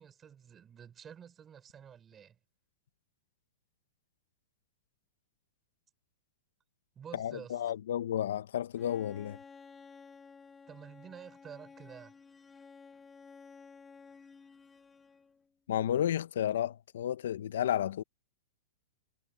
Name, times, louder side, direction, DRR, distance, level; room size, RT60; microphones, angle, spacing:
voice 1, 0.0-2.4 7.0-7.6 10.7-12.2, right 8 dB, 20° right, 6.1 m, -50 dB
voice 2, 7.2-9.4 15.7-18.0, left 10 dB, 75° left, 1.1 m, -32 dB
Bowed string instrument, 8.8-15.5, left 5 dB, 15° left, 2.2 m, -54 dB
hypercardioid pair, 130°, 0 cm